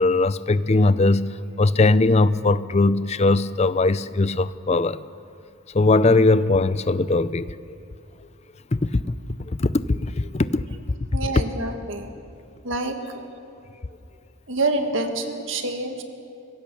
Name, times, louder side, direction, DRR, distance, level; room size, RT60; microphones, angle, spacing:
voice 1, 0.0-5.0 5.7-7.8 8.7-10.6, left 2 dB, 30° left, 15 dB, 0.5 m, -20 dB
voice 2, 11.1-12.1 12.6-13.3 14.5-16.0, right 2 dB, 60° right, 5 dB, 1.8 m, -27 dB
25.0 x 16.5 x 6.9 m, 2.6 s
head